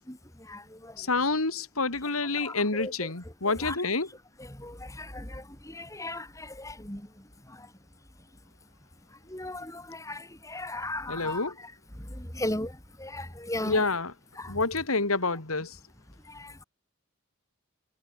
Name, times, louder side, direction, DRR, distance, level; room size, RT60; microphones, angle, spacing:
voice 1, 0.1-1.1 2.4-2.9 3.4-3.8 4.4-7.7 9.1-13.8 14.4-14.6 16.2-16.6, left 1 dB, 15° left, 3.8 m, -38 dB
voice 2, 1.0-4.1 11.1-11.5 13.7-14.1 14.5-15.8, left 3 dB, 90° left, 3.2 m, -28 dB
head